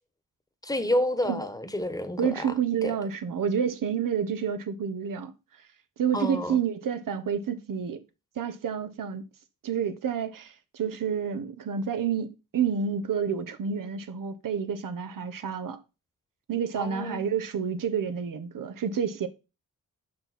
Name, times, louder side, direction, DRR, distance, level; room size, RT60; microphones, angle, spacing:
voice 1, 0.6-2.5 2.8-2.9 6.1-6.6 16.8-17.2, left 1 dB, 10° left, 1.3 m, -29 dB
voice 2, 2.2-5.3 6.0-8.0 8.4-9.2 9.6-15.8 16.5-19.3, right 7 dB, 70° right, 1.1 m, -29 dB
6.7 x 5.7 x 4.2 m
cardioid pair, 60°, 33 cm